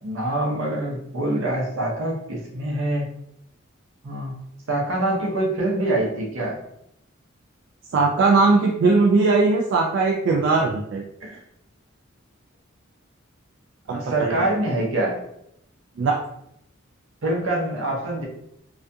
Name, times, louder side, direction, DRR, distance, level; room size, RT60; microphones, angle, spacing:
voice 1, 0.0-3.1 4.0-4.4 4.7-6.6 11.2-11.4 13.9-15.2 17.2-18.3, right 1 dB, 80° right, -1 dB, 0.7 m, -25 dB
voice 2, 7.9-11.0 13.9-14.4 16.0-16.2, right 3 dB, 65° right, 0 dB, 0.3 m, -19 dB
2.4 x 2.2 x 2.6 m, 0.77 s
head